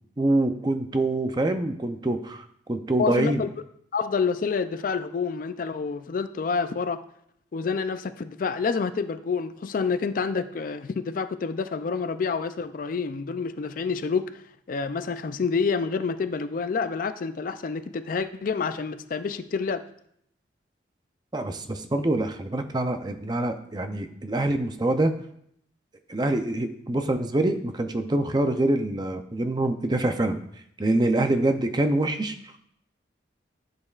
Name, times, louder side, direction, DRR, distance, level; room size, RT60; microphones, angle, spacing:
voice 1, 0.2-2.4 2.7-3.4 21.3-25.1 26.1-30.4 30.8-32.3, right 2 dB, 25° right, 0.5 m, -25 dB
voice 2, 3.0-3.5 3.9-7.0 7.5-14.4 14.7-19.8, left 5 dB, 50° left, 0.4 m, -28 dB
11.5 x 6.6 x 2.4 m
head